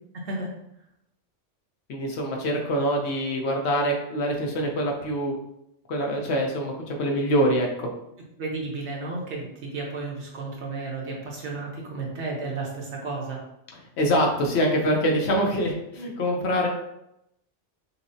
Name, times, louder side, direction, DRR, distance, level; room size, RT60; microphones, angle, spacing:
voice 1, 0.1-0.5 8.4-13.4, right 3 dB, 65° right, -2 dB, 1.2 m, -33 dB
voice 2, 1.9-5.3 5.9-7.9 14.0-16.7, equal, 65° left, 0 dB, 0.9 m, -24 dB
5.5 x 2.0 x 2.6 m, 0.81 s
omnidirectional pair, 1.2 m